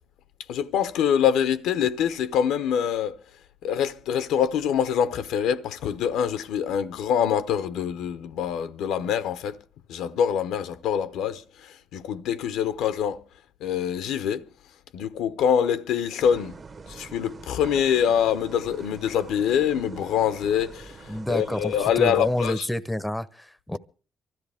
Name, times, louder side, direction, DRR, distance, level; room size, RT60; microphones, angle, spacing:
voice 1, 0.5-3.2 3.6-9.6 9.9-13.2 13.6-14.4 14.9-16.5 16.9-22.6, left 8 dB, 90° left, 0.8 m, -25 dB
sound 1, 16.2-22.5, right 4 dB, 40° right, 1.1 m, -44 dB
voice 2, 21.1-23.8, left 1 dB, 5° left, 0.6 m, -29 dB
24.0 x 13.5 x 3.5 m
cardioid pair, 90°, 0 cm